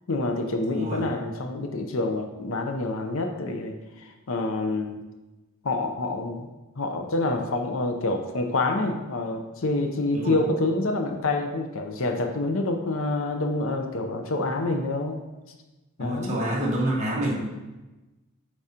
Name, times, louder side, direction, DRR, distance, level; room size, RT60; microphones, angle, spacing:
voice 1, 0.1-5.0 5.6-15.2 16.0-16.4, left 2 dB, 65° left, 4 dB, 0.6 m, -27 dB
voice 2, 0.7-1.0 10.1-10.4 16.0-17.3, right 1 dB, 30° right, -5 dB, 1.5 m, -27 dB
8.4 x 4.7 x 2.8 m, 1.1 s
head